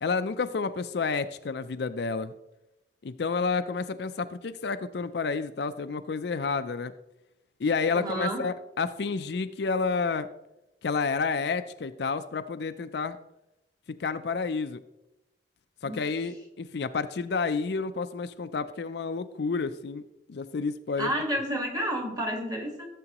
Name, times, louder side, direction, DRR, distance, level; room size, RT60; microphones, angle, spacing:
voice 1, 0.0-2.3 3.0-6.9 7.6-10.3 10.8-13.2 14.0-14.8 15.8-20.0 20.3-21.1, left 4 dB, 60° left, 10 dB, 0.4 m, -30 dB
voice 2, 7.9-8.4 15.8-16.1 21.0-22.9, right 1 dB, 20° right, 2 dB, 1.6 m, -30 dB
14.5 x 7.6 x 3.0 m, 0.91 s
head